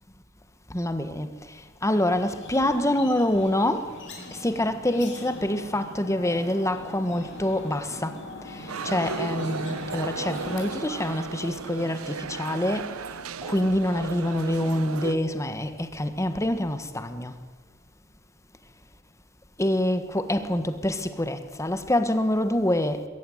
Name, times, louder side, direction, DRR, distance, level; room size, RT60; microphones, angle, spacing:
voice 1, 0.7-3.9 4.3-8.2 8.5-13.0 13.4-17.3 19.6-23.0, left 1 dB, 15° left, 1.5 m, -26 dB
sound 1, 1.9-10.9, left 1 dB, 60° left, 4.9 m, -40 dB
sound 2, 8.7-15.1, right 5 dB, 85° right, 0.9 m, -35 dB
21.5 x 16.5 x 9.4 m
head